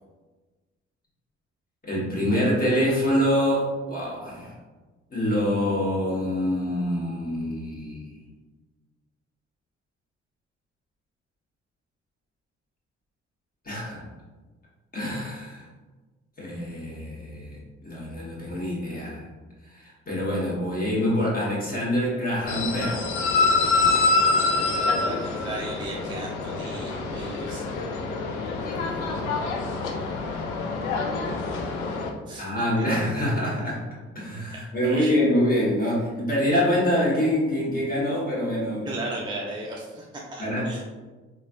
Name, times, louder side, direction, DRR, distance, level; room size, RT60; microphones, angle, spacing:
voice 1, 1.8-4.5 5.1-8.1 13.6-14.0 14.9-15.7 16.4-17.6 17.8-19.3 19.6-23.2 28.6-29.3 32.4-33.8 34.1-38.9 40.4-40.8, equal, 25° left, -6 dB, 1.4 m, -25 dB
sound 1, 22.5-32.1, left 3 dB, 75° left, 0.5 m, -26 dB
voice 2, 24.3-27.7 32.3-33.1 34.8-35.2 38.8-40.8, right 2 dB, 15° right, -3 dB, 0.4 m, -36 dB
4.8 x 2.3 x 2.5 m, 1.3 s
figure-of-eight pair, 40°, 36 cm